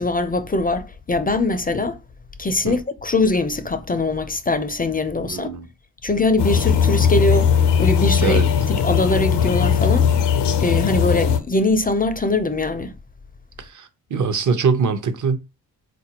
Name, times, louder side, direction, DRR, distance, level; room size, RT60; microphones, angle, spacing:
voice 1, 0.0-2.0 2.4-5.5 6.0-8.4 8.7-10.1 10.6-12.9, left 2 dB, 20° left, 0.5 m, -22 dB
voice 2, 5.2-5.7 8.2-8.5 13.6-15.4, right 5 dB, 45° right, 0.8 m, -23 dB
sound 1, 6.4-11.4, left 7 dB, 75° left, 0.7 m, -18 dB
3.8 x 2.5 x 2.9 m
supercardioid pair, 45°, 42 cm